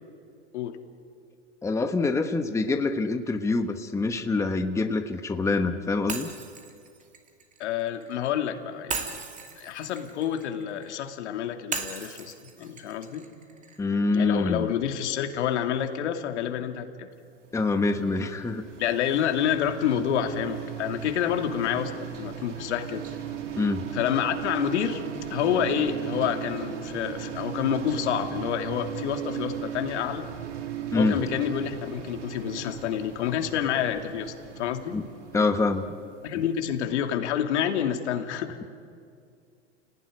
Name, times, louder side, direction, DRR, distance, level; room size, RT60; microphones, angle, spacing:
voice 1, 1.6-6.3 13.8-14.7 17.5-18.6 23.6-23.8 30.9-31.2 34.9-35.0 35.3-35.9, left 3 dB, 10° left, 7 dB, 1.1 m, -25 dB
Shatter, 6.1-8.2 8.9-11.0 11.7-13.8, right 5 dB, 20° right, 2.5 m, -37 dB
voice 2, 7.6-9.2 9.6-13.3 14.1-17.1 18.8-23.0 23.9-25.0 25.3-30.3 30.9-35.0 36.2-38.6, left 9 dB, 70° left, 5 dB, 2.6 m, -28 dB
sound 1, 17.4-36.5, right 9 dB, 90° right, 3.0 m, -37 dB
29.5 x 18.0 x 10.0 m, 2.3 s
hypercardioid pair, 120°, 36 cm